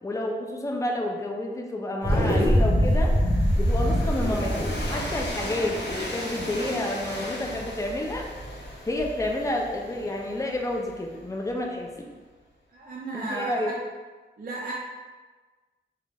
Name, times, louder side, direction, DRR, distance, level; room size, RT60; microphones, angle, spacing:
voice 1, 0.0-3.2 3.6-8.3 8.9-11.9 13.1-13.7, left 1 dB, 15° left, 0 dB, 0.4 m, -30 dB
Train, 2.0-11.9, equal, 65° left, 0.6 m, -38 dB
sound 1, 2.0-6.7, equal, 30° right, 0.8 m, -23 dB
voice 2, 12.7-13.7 14.4-14.7, right 2 dB, 50° right, -4 dB, 0.4 m, -34 dB
2.3 x 2.1 x 3.2 m, 1.3 s
wide cardioid pair, 100°, 19 cm